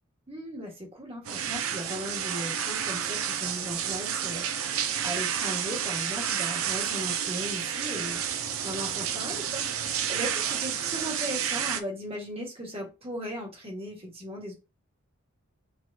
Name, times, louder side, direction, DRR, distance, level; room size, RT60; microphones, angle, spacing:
voice 1, 0.3-14.5, equal, 25° right, 0 dB, 1.4 m, -37 dB
sound 1, 1.2-11.8, right 8 dB, 80° right, 0.5 m, -30 dB
6.2 x 3.0 x 2.6 m, 0.28 s
head